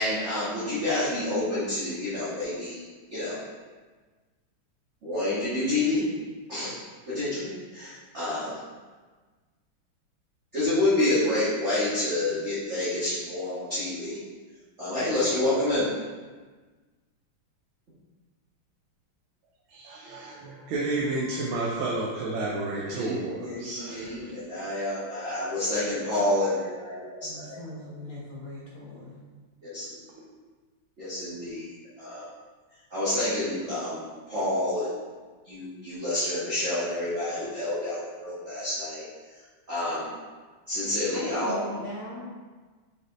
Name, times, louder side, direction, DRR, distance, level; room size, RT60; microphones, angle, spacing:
voice 1, 0.0-2.8 3.1-3.4 5.0-6.0 6.5-6.8 7.1-8.6 10.5-14.2 14.8-15.9 22.8-27.6 29.6-29.8 31.0-31.7 32.0-32.2 32.9-34.9 35.5-39.0 39.7-40.1 40.7-41.6, left 1 dB, 40° right, -13 dB, 1.3 m, -28 dB
voice 2, 19.7-24.4, right 2 dB, 80° right, -5 dB, 1.5 m, -31 dB
voice 3, 27.2-29.2 41.1-42.3, left 1 dB, 55° left, -5 dB, 1.1 m, -38 dB
4.9 x 4.1 x 2.5 m, 1.4 s
omnidirectional pair, 2.3 m